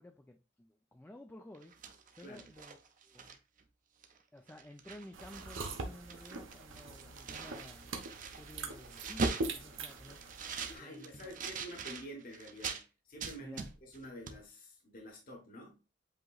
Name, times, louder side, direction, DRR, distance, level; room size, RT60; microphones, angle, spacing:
voice 1, 0.0-1.7 2.1-3.4 4.3-8.0 8.2-10.3 10.8-11.3 13.4-13.7, left 1 dB, 10° left, 0.4 m, -53 dB
sound 1, 1.5-3.6 4.0-4.2 4.5-5.7 6.0-12.8 13.2-14.0 14.3-14.4, right 4 dB, 40° right, 0.6 m, -41 dB
sound 2, 5.1-10.8, right 3 dB, 70° right, 0.9 m, -43 dB
voice 2, 10.6-15.8, equal, 45° left, 1.2 m, -49 dB
7.8 x 2.9 x 2.4 m
head